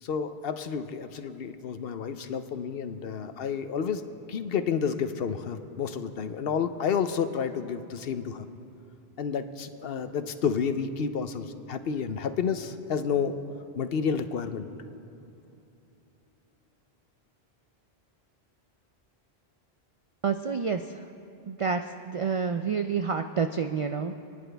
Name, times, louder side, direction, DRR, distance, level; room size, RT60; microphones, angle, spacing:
voice 1, 0.0-4.0 4.3-8.4 9.2-13.3 13.8-14.7, left 6 dB, 70° left, 10 dB, 0.9 m, -30 dB
voice 2, 20.2-21.0 21.5-24.1, right 5 dB, 60° right, 7 dB, 0.3 m, -29 dB
28.0 x 10.0 x 3.4 m, 2.9 s
omnidirectional pair, 1.1 m